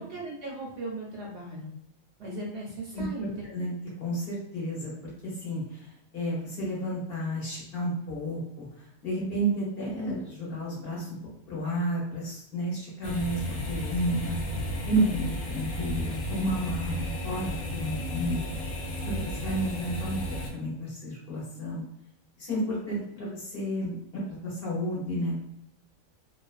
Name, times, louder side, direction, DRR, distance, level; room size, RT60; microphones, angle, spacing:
voice 1, 0.0-1.7 2.2-3.3, right 2 dB, 65° right, -2 dB, 0.8 m, -37 dB
voice 2, 2.9-3.7 4.0-4.9 5.2-11.2 11.5-18.4 19.2-21.8 22.4-25.4, right 1 dB, 50° left, -5 dB, 0.9 m, -31 dB
sound 1, 13.0-20.5, equal, 80° left, 0.9 m, -33 dB
2.4 x 2.2 x 2.3 m, 0.78 s
omnidirectional pair, 1.4 m